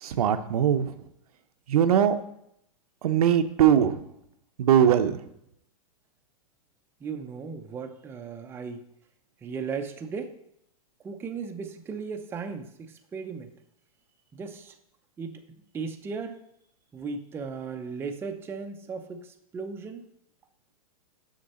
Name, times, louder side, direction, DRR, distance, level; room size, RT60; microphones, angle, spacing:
voice 1, 0.0-0.9 1.7-2.1 3.0-4.0 4.6-5.2, right 9 dB, 80° right, 8 dB, 0.7 m, -21 dB
voice 2, 7.0-8.8 9.4-10.3 11.0-13.5 14.3-14.7 15.2-15.4 15.7-16.4 16.9-20.0, right 5 dB, 10° right, 5 dB, 0.5 m, -36 dB
6.6 x 6.5 x 4.2 m, 0.75 s
hypercardioid pair, 140°, 19 cm